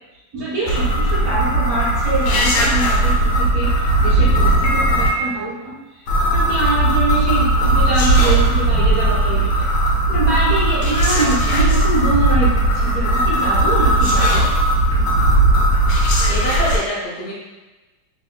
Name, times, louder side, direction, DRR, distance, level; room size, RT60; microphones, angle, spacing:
voice 1, 0.3-9.7 10.1-14.5, right 2 dB, 65° right, -7 dB, 0.9 m, -24 dB
sound 1, 0.7-5.1 6.1-16.8, right 1 dB, 90° left, 1.4 m, -17 dB
voice 2, 16.3-17.3, left 1 dB, 45° left, -6 dB, 0.6 m, -25 dB
2.9 x 2.7 x 2.2 m, 1.1 s
omnidirectional pair, 2.1 m